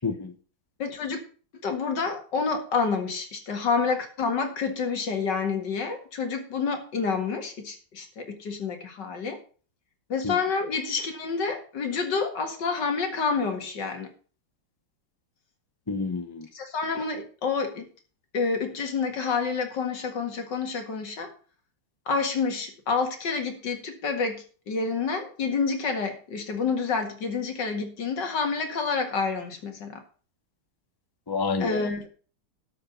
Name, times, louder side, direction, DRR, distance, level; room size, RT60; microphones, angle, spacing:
voice 1, 0.0-0.3 10.2-10.3 15.9-16.5 31.3-31.8, left 4 dB, 30° left, 7 dB, 0.4 m, -29 dB
voice 2, 0.8-1.2 1.5-9.4 10.1-14.1 16.5-17.9 18.3-21.3 22.1-30.0 31.6-32.1, left 5 dB, 55° left, 5 dB, 2.4 m, -28 dB
12.5 x 5.1 x 6.7 m, 0.40 s
omnidirectional pair, 2.3 m